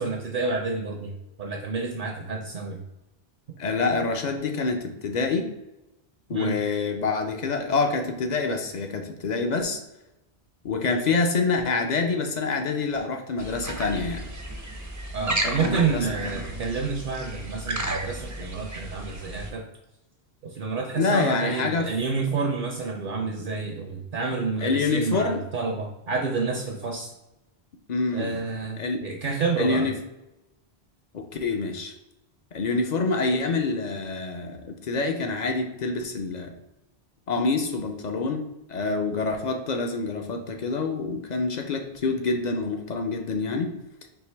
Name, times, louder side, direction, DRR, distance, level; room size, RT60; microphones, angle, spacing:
voice 1, 0.0-2.8 6.3-6.6 15.1-19.6 20.5-27.1 28.1-29.9, right 4 dB, 60° right, 2 dB, 0.7 m, -29 dB
voice 2, 3.6-5.5 6.3-9.8 10.6-14.2 15.4-16.1 21.0-21.9 24.6-25.4 27.9-28.4 28.8-29.1 29.6-29.9 31.1-31.9 32.5-36.5 37.3-43.7, left 4 dB, 55° left, 4 dB, 0.5 m, -26 dB
sound 1, 13.4-19.5, right 1 dB, 25° right, 0.4 m, -33 dB
4.5 x 2.9 x 3.3 m, 0.94 s
omnidirectional pair, 1.1 m